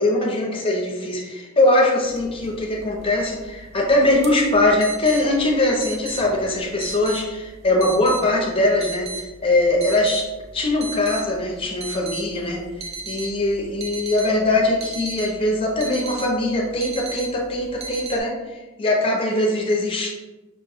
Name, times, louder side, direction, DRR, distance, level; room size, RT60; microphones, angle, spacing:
voice 1, 0.0-10.3 10.5-12.6 13.0-20.1, left 1 dB, 25° left, 0 dB, 0.7 m, -21 dB
sound 1, 2.1-18.2, right 3 dB, 30° right, 0.5 m, -37 dB
5.6 x 2.2 x 3.5 m, 1.2 s
head